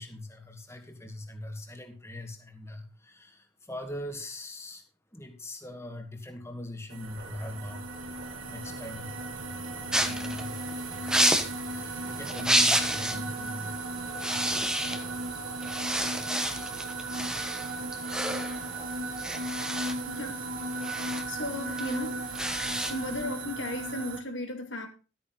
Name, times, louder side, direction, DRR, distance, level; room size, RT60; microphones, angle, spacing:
voice 1, 0.0-4.8 5.1-9.2 9.9-10.6 11.7-13.8 14.3-14.8, left 1 dB, 15° left, 2.1 m, -41 dB
sound 1, 6.9-24.2, right 2 dB, 85° right, 1.9 m, -36 dB
sound 2, 7.0-12.0, right 2 dB, 50° right, 2.6 m, -51 dB
sound 3, 9.9-13.3 13.6-13.8 14.1-15.3 15.6-23.2, right 1 dB, 5° right, 1.2 m, -30 dB
voice 2, 20.0-20.4 20.8-22.2 22.9-24.9, left 1 dB, 70° left, 2.3 m, -36 dB
13.0 x 9.0 x 4.0 m
head